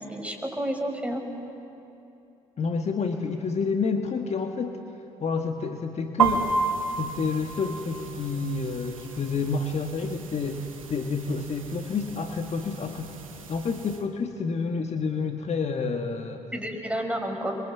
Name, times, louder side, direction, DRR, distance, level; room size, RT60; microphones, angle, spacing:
voice 1, 0.1-1.2 16.5-17.6, equal, 5° right, 3 dB, 5.9 m, -30 dB
voice 2, 2.6-4.8 5.2-6.6 7.0-13.1 13.5-16.4, left 4 dB, 40° left, 5 dB, 1.7 m, -29 dB
sound 1, 6.2-14.0, right 4 dB, 85° right, 1.2 m, -32 dB
29.5 x 23.0 x 8.3 m, 2.8 s
figure-of-eight pair, 45°, 17 cm